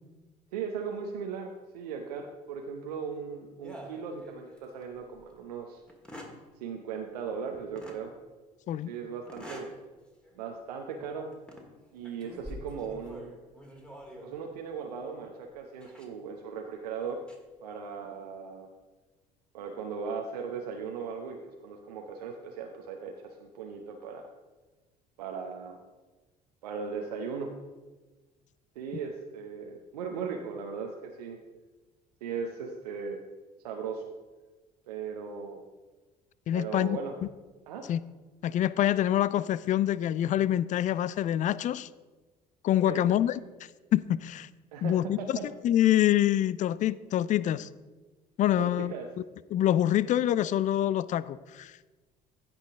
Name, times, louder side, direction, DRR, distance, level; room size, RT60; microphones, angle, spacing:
voice 1, 0.5-5.8 6.6-8.1 8.9-9.7 10.3-11.3 11.9-13.3 14.2-17.2 17.6-18.7 19.5-24.3 25.2-25.8 26.6-27.5 28.8-31.4 32.2-33.2 33.6-34.0 34.9-35.6 36.5-37.2 37.7-37.9 42.8-43.0 44.7-45.5 48.6-49.1, right 6 dB, 75° right, 2 dB, 0.8 m, -38 dB
sound 1, 3.6-4.7 5.1-5.2 5.9-6.4 7.8-8.0 9.3-9.8 10.2-10.4 11.3-11.7 12.1-14.4 15.8-16.1 17.0-17.4, equal, 5° left, 2.0 m, -45 dB
voice 2, 36.5-37.0 37.9-38.0 38.4-41.9 42.6-43.4 43.9-44.5 44.8-45.4 45.6-47.7 48.4-48.9 49.5-51.7, left 12 dB, 40° left, 18 dB, 0.4 m, -26 dB
16.0 x 5.6 x 3.6 m, 1.2 s
figure-of-eight pair, 55°, 21 cm